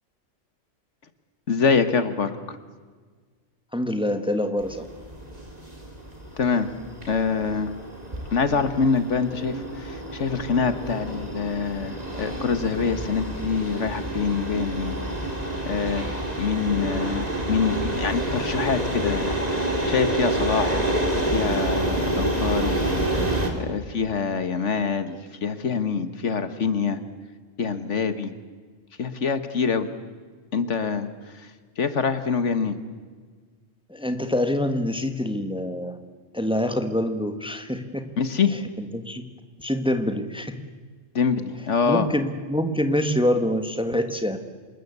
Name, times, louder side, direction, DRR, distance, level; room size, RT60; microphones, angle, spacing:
voice 1, 1.5-2.6 6.4-6.7 7.1-7.7 8.3-15.0 15.6-16.1 16.4-20.9 21.3-22.8 23.1-23.2 23.6-27.0 27.6-28.3 29.0-29.9 30.5-31.1 31.8-32.8 38.2-38.5 41.1-42.1, left 5 dB, 65° left, 11 dB, 1.7 m, -25 dB
voice 2, 3.7-4.9 33.9-36.0 36.3-38.0 38.5-39.2 39.6-40.6 41.9-44.4, left 1 dB, 5° right, 8 dB, 1.5 m, -25 dB
sound 1, 4.6-23.5, right 1 dB, 30° right, 3.2 m, -28 dB
27.0 x 20.5 x 8.2 m, 1.5 s
omnidirectional pair, 1.3 m